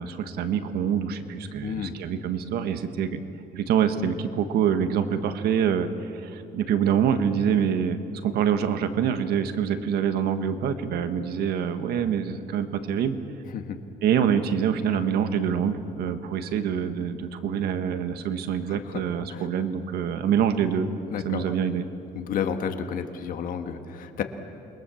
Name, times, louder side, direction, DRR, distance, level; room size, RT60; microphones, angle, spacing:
voice 1, 0.0-3.2 3.5-13.2 14.0-20.9 21.2-21.9, right 8 dB, 75° right, 9 dB, 1.6 m, -25 dB
voice 2, 1.6-1.9 13.5-13.8 18.7-19.0 19.3-19.4 21.1-21.5 22.1-24.2, left 7 dB, 60° left, 6 dB, 1.8 m, -31 dB
28.0 x 22.5 x 7.2 m, 2.8 s
cardioid pair, 150°, 16 cm